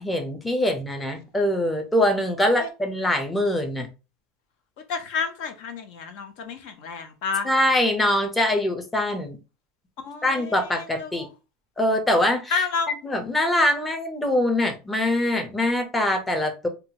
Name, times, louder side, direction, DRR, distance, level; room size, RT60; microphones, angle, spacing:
voice 1, 0.0-3.9 7.4-9.4 10.2-11.3 11.8-12.6 13.0-16.7, left 1 dB, 10° left, 0.7 m, -23 dB
voice 2, 4.9-7.5 10.0-11.3 12.5-12.9, left 5 dB, 70° left, 0.6 m, -30 dB
2.7 x 2.3 x 2.8 m
supercardioid pair, 125°, 0 cm